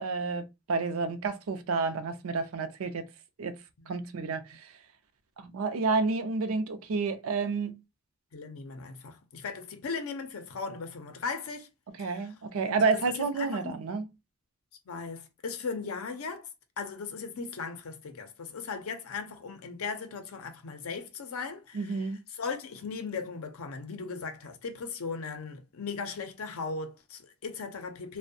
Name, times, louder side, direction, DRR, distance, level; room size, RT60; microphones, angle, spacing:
voice 1, 0.0-3.0 3.4-3.6 3.9-4.7 5.4-7.8 12.0-14.1 21.7-22.2, right 4 dB, 80° right, 0.4 m, -30 dB
voice 2, 8.3-11.7 12.0-12.3 12.6-13.8 14.9-16.5 16.8-22.1 22.4-28.2, left 5 dB, 80° left, 0.5 m, -38 dB
2.5 x 2.1 x 2.5 m
head